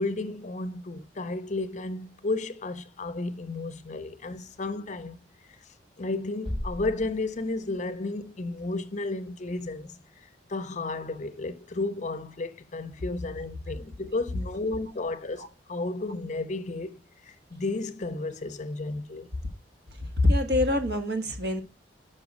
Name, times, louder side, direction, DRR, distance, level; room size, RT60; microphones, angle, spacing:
voice 1, 0.0-5.2 6.0-10.0 10.2-19.3, left 2 dB, 40° left, 0.5 m, -33 dB
sound 1, 6.4-8.4, left 1 dB, 30° right, 3.1 m, -37 dB
voice 2, 20.2-21.6, left 2 dB, 60° right, 1.4 m, -24 dB
5.9 x 5.5 x 5.2 m
head